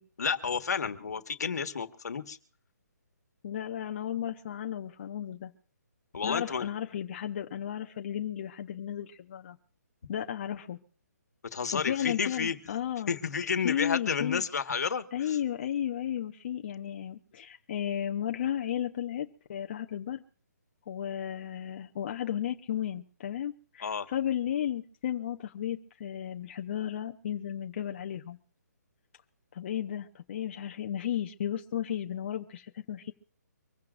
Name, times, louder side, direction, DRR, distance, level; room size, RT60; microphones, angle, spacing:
voice 1, 0.2-2.4 6.1-6.7 11.5-12.6 13.1-15.4 23.8-24.1, left 6 dB, 70° left, 8 dB, 1.5 m, -31 dB
voice 2, 3.4-5.5 6.2-9.6 10.1-10.8 11.7-13.1 13.6-14.4 15.1-20.2 20.9-28.4 29.5-33.1, left 10 dB, 35° left, 4 dB, 0.8 m, -34 dB
25.0 x 15.5 x 2.5 m, 0.42 s
hypercardioid pair, 160°, 9 cm